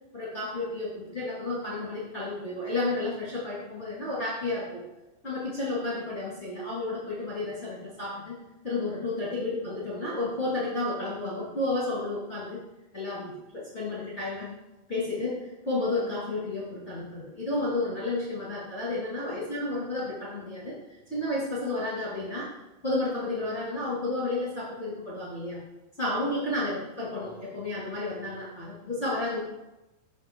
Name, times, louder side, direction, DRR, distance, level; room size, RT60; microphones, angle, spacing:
voice 1, 0.1-4.8 5.2-8.4 8.6-12.6 12.9-14.5 14.9-20.8 21.1-22.6 22.8-25.6 26.0-29.4, left 2 dB, 25° left, -10 dB, 1.8 m, -31 dB
14.0 x 5.0 x 3.1 m, 1.0 s
omnidirectional pair, 4.5 m